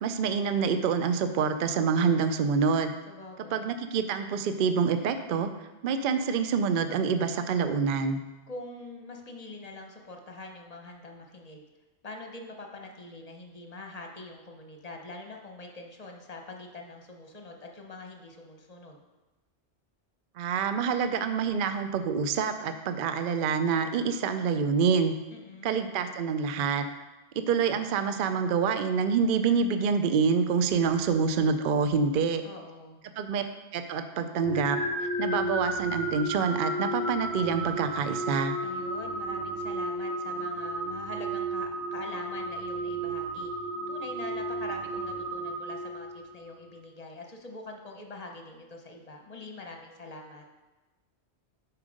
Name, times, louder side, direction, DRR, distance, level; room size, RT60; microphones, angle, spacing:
voice 1, 0.0-3.0 3.5-5.5 5.8-8.2 20.4-25.1 25.6-26.9 27.4-32.4 33.2-33.4 33.7-34.8 35.2-38.5, right 6 dB, 60° right, 8 dB, 0.6 m, -26 dB
voice 2, 3.1-3.7 8.5-11.6 12.0-19.0 25.3-25.7 32.4-33.0 38.6-43.5 43.9-50.5, left 2 dB, 35° left, 2 dB, 0.9 m, -44 dB
sound 1, 34.4-46.4, right 1 dB, 80° right, 1.8 m, -33 dB
7.3 x 4.6 x 5.1 m, 1.1 s
omnidirectional pair, 1.2 m